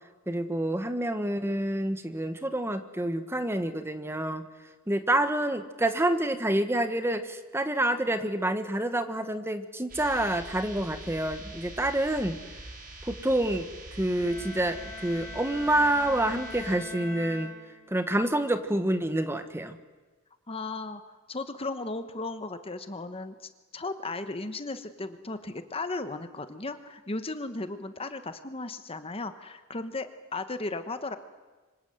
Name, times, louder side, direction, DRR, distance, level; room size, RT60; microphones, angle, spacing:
voice 1, 0.3-4.4 4.9-12.4 13.0-13.7 14.0-17.5 17.9-19.8, right 1 dB, 10° right, 9 dB, 1.4 m, -28 dB
sound 1, 9.9-16.8, right 2 dB, 40° right, 4.9 m, -44 dB
Bowed string instrument, 14.2-18.2, left 2 dB, 10° left, 6.0 m, -43 dB
voice 2, 20.5-21.0 21.3-31.2, left 3 dB, 25° left, 9 dB, 1.2 m, -36 dB
26.5 x 25.5 x 8.1 m, 1.3 s
head